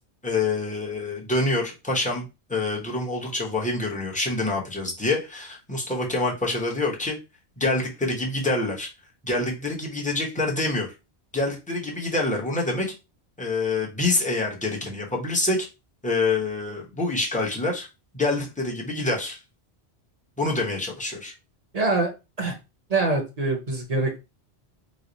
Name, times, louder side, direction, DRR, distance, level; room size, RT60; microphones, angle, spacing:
voice 1, 0.2-7.2 7.6-8.9 9.2-10.9 11.3-12.9 13.4-15.7 16.0-17.9 18.1-19.4 20.4-21.3, left 2 dB, 10° left, -3 dB, 0.7 m, -26 dB
voice 2, 21.7-22.1 22.4-22.5 22.9-24.2, right 3 dB, 40° right, 2 dB, 0.8 m, -24 dB
3.1 x 2.1 x 3.9 m, 0.27 s
omnidirectional pair, 1.1 m